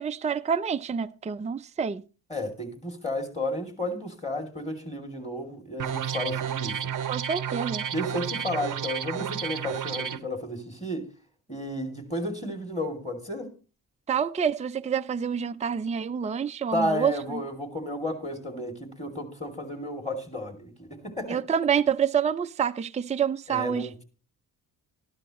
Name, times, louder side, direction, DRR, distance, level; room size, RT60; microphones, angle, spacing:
voice 1, 0.0-2.0 7.1-7.9 14.1-17.4 21.3-23.9, right 7 dB, 15° right, 0.4 m, -27 dB
voice 2, 2.3-6.9 7.9-11.1 11.5-13.5 16.7-21.4 23.5-24.0, left 1 dB, 15° left, 2.7 m, -32 dB
sound 1, 5.8-10.2, right 8 dB, 45° right, 0.7 m, -31 dB
12.0 x 12.0 x 3.0 m
cardioid pair, 60°, 43 cm